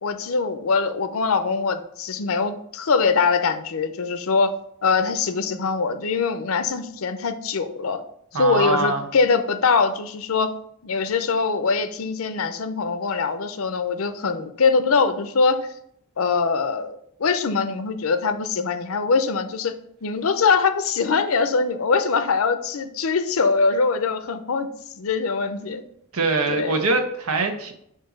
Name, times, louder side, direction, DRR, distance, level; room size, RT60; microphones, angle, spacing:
voice 1, 0.0-4.5 4.8-8.0 8.3-10.5 10.8-15.6 16.2-19.7 20.0-24.7 25.0-25.8 26.5-26.8, left 4 dB, 70° left, 10 dB, 0.6 m, -22 dB
voice 2, 8.3-9.1 26.1-27.7, right 3 dB, 90° right, 4 dB, 1.0 m, -23 dB
6.5 x 2.7 x 5.7 m, 0.70 s
head